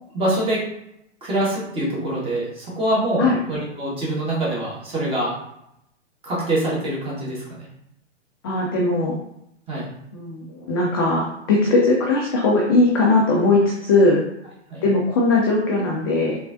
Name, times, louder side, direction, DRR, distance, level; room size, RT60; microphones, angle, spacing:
voice 1, 0.1-0.6 1.2-5.3 6.2-7.7 9.7-9.9 14.7-14.8, right 1 dB, 15° right, -6 dB, 1.4 m, -24 dB
voice 2, 8.4-9.1 10.1-14.2 14.8-16.4, left 2 dB, 20° left, -2 dB, 0.4 m, -19 dB
3.7 x 3.5 x 2.5 m, 0.80 s
figure-of-eight pair, 115°, 37 cm